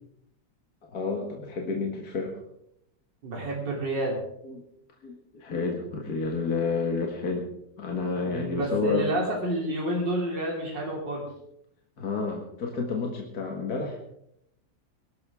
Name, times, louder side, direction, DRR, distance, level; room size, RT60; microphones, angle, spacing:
voice 1, 0.9-2.4 4.4-4.6 5.0-7.5 7.8-9.1 12.0-14.0, left 4 dB, 55° left, 1 dB, 2.1 m, -30 dB
voice 2, 3.2-4.2 8.3-11.3, right 1 dB, 75° right, -2 dB, 3.7 m, -29 dB
21.5 x 12.5 x 3.6 m, 0.77 s
omnidirectional pair, 1.9 m